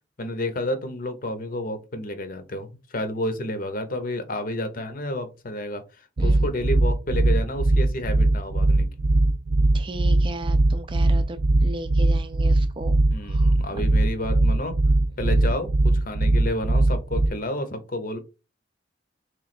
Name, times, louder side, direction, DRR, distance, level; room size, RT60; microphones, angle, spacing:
voice 1, 0.2-5.8 6.2-8.9 13.1-14.8 15.2-18.2, left 1 dB, 50° left, 0.8 m, -30 dB
sound 1, 6.2-17.3, right 2 dB, 65° right, 0.7 m, -20 dB
voice 2, 9.7-13.0 13.2-13.8 15.2-15.3, right 1 dB, 30° right, 0.4 m, -36 dB
3.4 x 3.1 x 4.1 m
head